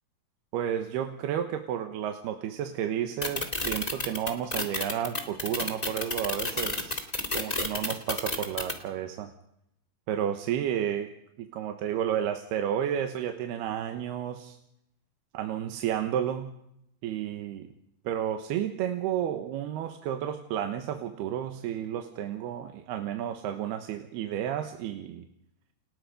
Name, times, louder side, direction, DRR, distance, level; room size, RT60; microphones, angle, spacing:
voice 1, 0.5-7.0 7.3-9.3 10.1-11.1 11.4-14.6 15.3-16.5 17.0-17.7 18.0-25.3, right 10 dB, 85° right, 6 dB, 3.2 m, -31 dB
sound 1, 3.2-8.7, left 2 dB, 15° left, 1.4 m, -30 dB
29.5 x 19.0 x 5.2 m, 0.77 s
omnidirectional pair, 4.5 m